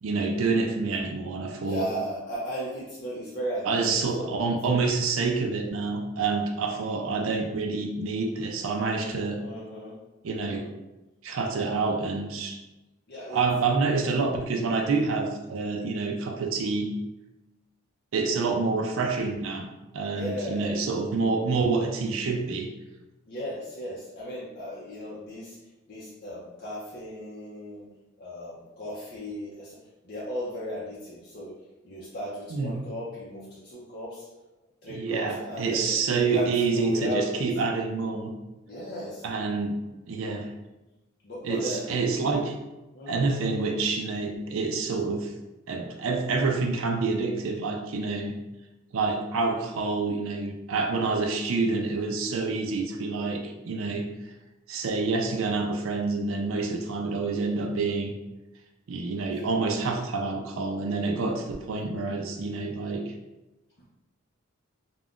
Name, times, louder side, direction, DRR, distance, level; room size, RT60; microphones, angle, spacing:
voice 1, 0.0-1.9 3.6-9.4 10.2-10.7 11.2-12.6 13.3-16.9 18.1-22.7 32.5-32.8 34.9-38.3 39.2-39.8 40.1-40.5 41.4-42.5 43.1-45.3 45.7-48.4 48.9-54.1 54.7-58.1 58.9-63.1, right 4 dB, 70° right, 2 dB, 0.4 m, -27 dB
voice 2, 1.6-4.3 4.6-4.8 9.4-10.0 10.3-10.7 13.1-13.4 20.1-20.8 23.3-25.6 25.9-27.9 28.2-31.6 31.8-34.3 34.8-37.5 38.7-39.2 41.2-42.1 42.9-43.3, equal, 45° left, -7 dB, 0.5 m, -36 dB
2.4 x 2.1 x 3.6 m, 1.0 s
head